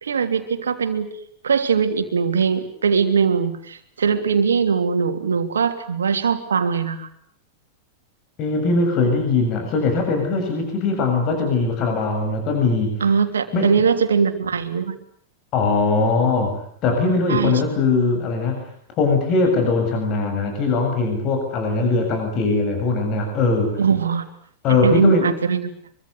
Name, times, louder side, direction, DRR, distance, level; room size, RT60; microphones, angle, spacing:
voice 1, 0.0-1.1 1.4-7.1 13.0-14.9 17.3-17.6 23.8-24.2 24.7-25.7, right 6 dB, 70° right, 8 dB, 3.0 m, -21 dB
voice 2, 8.4-13.0 13.5-13.7 15.5-18.7 19.0-23.8 24.6-25.3, left 3 dB, 35° left, 4 dB, 7.3 m, -21 dB
24.5 x 24.5 x 8.2 m, 0.63 s
figure-of-eight pair, 90°, 0 cm